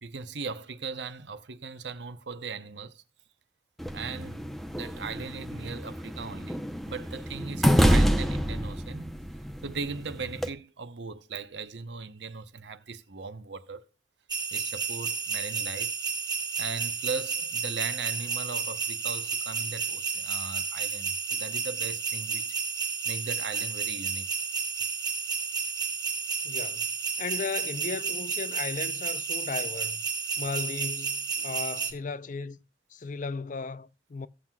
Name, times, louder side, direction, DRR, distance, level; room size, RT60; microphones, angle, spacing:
voice 1, 0.0-3.0 3.9-9.1 9.6-13.8 14.5-15.9 16.6-22.5 23.0-24.3 31.4-31.5, right 4 dB, 75° right, 0.9 m, -38 dB
sound 1, 3.8-10.5, equal, ahead, 0.7 m, -27 dB
sound 2, 14.3-31.9, right 5 dB, 25° right, 1.2 m, -31 dB
voice 2, 26.4-26.9 27.2-30.0 30.4-32.6 32.9-34.3, left 4 dB, 45° left, 0.5 m, -36 dB
16.0 x 7.4 x 2.3 m
head